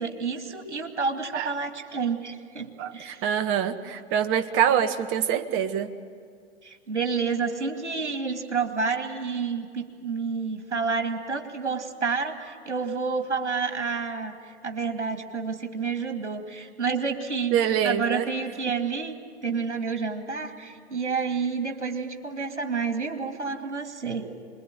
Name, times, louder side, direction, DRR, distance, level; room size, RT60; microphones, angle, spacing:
voice 1, 0.0-3.2 6.6-17.6 17.8-19.1 19.4-24.3, right 5 dB, 85° right, 5 dB, 2.6 m, -29 dB
voice 2, 2.8-5.9 17.5-18.3, right 9 dB, 35° right, 9 dB, 1.5 m, -25 dB
26.0 x 22.0 x 9.1 m, 2.1 s
hypercardioid pair, 105°, 34 cm